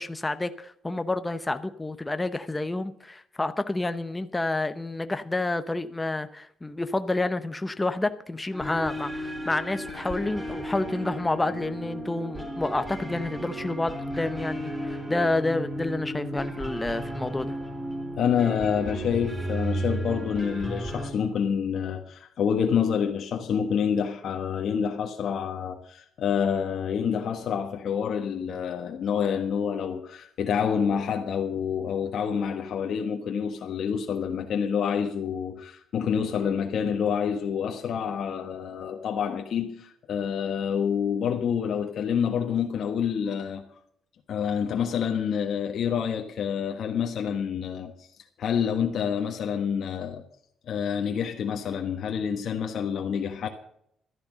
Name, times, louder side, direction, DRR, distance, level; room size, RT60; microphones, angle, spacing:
voice 1, 0.0-17.5, left 2 dB, 15° left, 0.8 m, -29 dB
sound 1, 8.5-21.1, equal, 10° right, 3.9 m, -34 dB
voice 2, 18.2-43.6 44.3-48.1 48.4-50.2 50.7-53.5, left 7 dB, 65° left, 1.4 m, -27 dB
13.0 x 10.5 x 6.2 m
cardioid pair, 90°, 0 cm